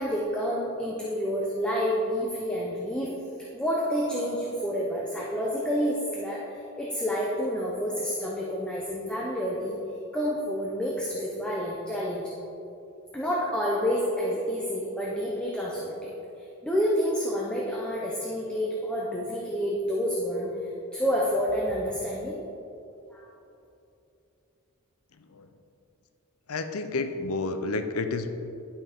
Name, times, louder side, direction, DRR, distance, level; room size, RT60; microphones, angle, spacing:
voice 1, 0.0-3.1 3.5-6.4 6.8-9.8 10.1-12.3 13.1-16.1 16.6-20.5 20.9-22.4 23.1-23.2, equal, 5° left, -4 dB, 0.7 m, -29 dB
voice 2, 25.2-25.5 26.5-28.3, left 3 dB, 85° left, 8 dB, 0.6 m, -30 dB
11.0 x 5.8 x 3.6 m, 2.8 s
head